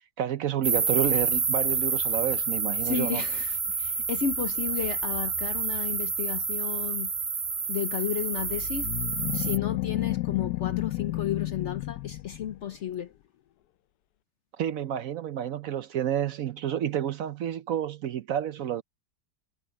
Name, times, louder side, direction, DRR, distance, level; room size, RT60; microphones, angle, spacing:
voice 1, 0.2-3.2 14.6-18.8, right 10 dB, 65° right, 0.9 m, -30 dB
sound 1, 0.6-9.6, right 5 dB, 45° right, 2.0 m, -29 dB
voice 2, 2.8-7.1 7.7-8.9 9.3-13.1, left 9 dB, 60° left, 0.8 m, -32 dB
sound 2, 8.4-12.8, left 18 dB, 75° left, 1.1 m, -31 dB
omnidirectional pair, 1.8 m